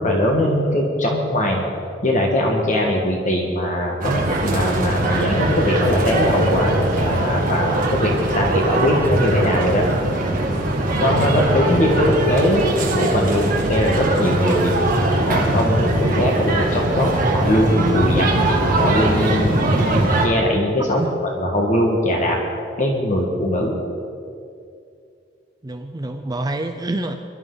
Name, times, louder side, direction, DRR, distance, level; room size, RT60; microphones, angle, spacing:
voice 1, 0.0-1.7 2.0-9.9 11.0-12.7 12.9-14.7 15.2-18.5 18.8-21.0 21.4-22.4 22.8-23.7, left 1 dB, 40° left, 0 dB, 1.6 m, -20 dB
sound 1, 4.0-20.3, right 1 dB, 50° right, 2.1 m, -21 dB
voice 2, 20.8-21.1 25.6-27.1, right 2 dB, 20° right, 6 dB, 0.6 m, -27 dB
22.0 x 12.5 x 3.9 m, 2.4 s
head